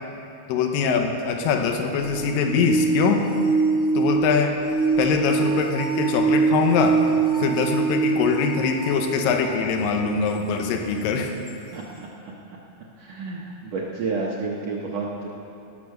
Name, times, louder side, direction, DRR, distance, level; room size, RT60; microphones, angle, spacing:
voice 1, 0.5-3.2 3.9-4.5 5.0-7.0 7.4-11.3, left 5 dB, 85° left, 4 dB, 2.5 m, -23 dB
sound 1, 2.0-9.7 10.4-10.5 11.5-11.6, right 4 dB, 65° left, 0.9 m, -24 dB
voice 2, 11.7-12.3 13.0-15.3, right 4 dB, 70° right, -3 dB, 1.7 m, -30 dB
17.5 x 6.2 x 6.4 m, 2.7 s
omnidirectional pair, 3.9 m